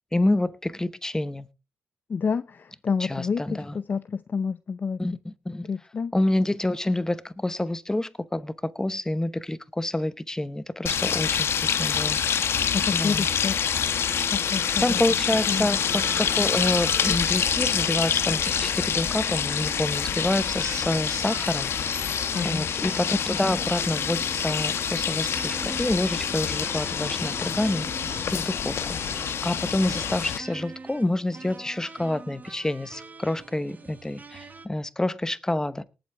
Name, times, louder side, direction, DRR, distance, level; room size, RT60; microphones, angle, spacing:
voice 1, 0.1-1.5 3.0-3.7 5.0-5.7 6.1-12.2 12.9-13.3 14.8-21.7 22.4-27.9 28.3-28.8 29.1-35.8, left 1 dB, 10° left, 1.0 m, -27 dB
voice 2, 2.1-5.0 5.6-6.1 12.7-15.0 15.5-15.8 22.3-22.7, left 5 dB, 45° left, 0.6 m, -29 dB
sound 1, 10.9-30.4, left 7 dB, 65° left, 1.2 m, -26 dB
sound 2, 15.2-34.7, right 3 dB, 35° right, 1.6 m, -44 dB
19.0 x 7.9 x 3.5 m
cardioid pair, 75°, 5 cm